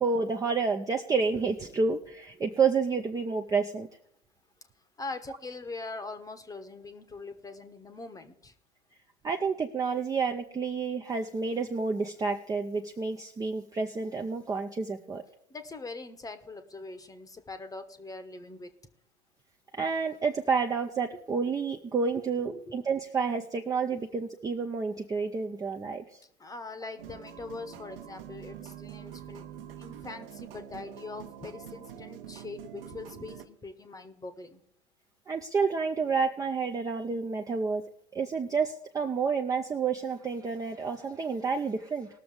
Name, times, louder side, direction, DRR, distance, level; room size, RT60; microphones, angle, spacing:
voice 1, 0.0-3.9 9.2-15.2 19.7-26.0 35.3-37.8 38.1-42.1, right 5 dB, 10° right, 3 dB, 0.6 m, -29 dB
voice 2, 5.0-8.5 15.5-18.7 22.5-22.8 26.4-29.5 29.8-34.6, left 3 dB, 10° left, 10 dB, 1.0 m, -42 dB
sound 1, 27.0-33.5, right 10 dB, 60° right, 1.1 m, -45 dB
20.0 x 6.8 x 3.8 m, 0.74 s
figure-of-eight pair, 90°, 33 cm